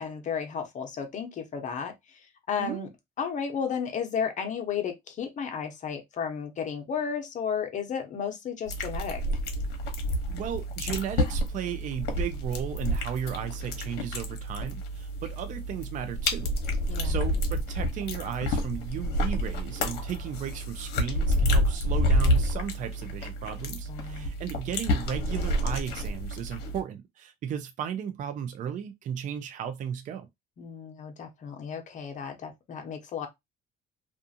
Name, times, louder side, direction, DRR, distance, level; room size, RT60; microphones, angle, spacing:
voice 1, 0.0-2.9 3.2-9.2 16.9-17.2 23.9-24.3 30.6-33.3, left 7 dB, 45° left, 0.8 m, -33 dB
sound 1, 8.7-26.8, equal, 80° left, 0.8 m, -29 dB
voice 2, 10.3-16.5 17.0-30.3, right 8 dB, 50° right, 0.4 m, -35 dB
2.5 x 2.4 x 2.6 m
cardioid pair, 110°, 17 cm